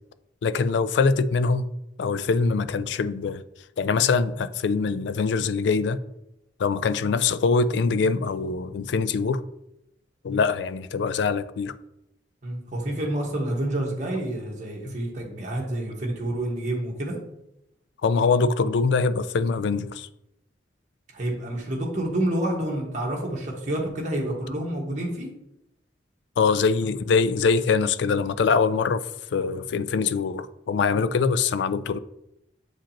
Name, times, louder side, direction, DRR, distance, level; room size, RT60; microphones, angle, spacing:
voice 1, 0.4-1.7 2.0-3.4 3.8-6.0 6.6-9.4 10.2-11.7 18.0-20.1 26.4-32.0, left 5 dB, 70° left, 0.3 m, -23 dB
voice 2, 12.4-17.1 21.1-25.3, right 1 dB, 40° right, 1.4 m, -28 dB
7.4 x 4.9 x 2.9 m
head